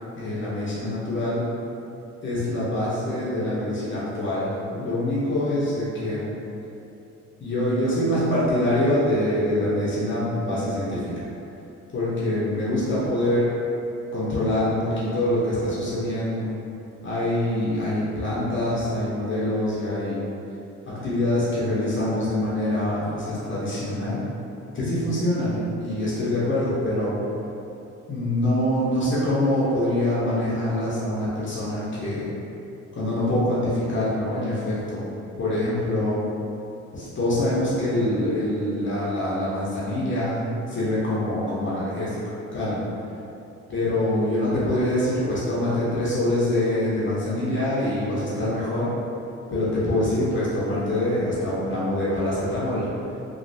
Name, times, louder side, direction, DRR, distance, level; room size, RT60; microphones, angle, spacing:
voice 1, 0.2-1.4 2.2-6.3 7.4-11.3 11.9-13.5 14.1-16.5 17.0-20.2 20.8-24.2 24.7-27.1 28.1-32.3 32.9-35.1 35.4-36.2 36.9-40.4 40.7-42.2 42.5-42.9 43.7-48.9 49.5-52.9, left 1 dB, 40° left, -9 dB, 0.8 m, -25 dB
3.1 x 2.5 x 2.7 m, 2.8 s
cardioid pair, 90°, 30 cm